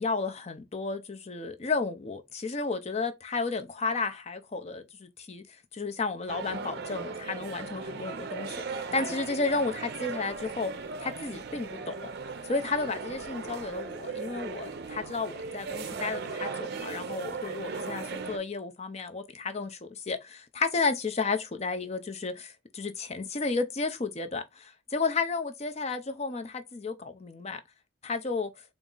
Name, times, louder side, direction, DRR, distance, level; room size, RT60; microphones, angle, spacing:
voice 1, 0.0-5.4 5.7-10.7 11.0-11.9 12.4-27.6 28.0-28.5, left 4 dB, 30° left, 0.5 m, -32 dB
sound 1, 6.3-18.4, right 4 dB, 50° right, 0.5 m, -37 dB
4.0 x 2.4 x 3.7 m
head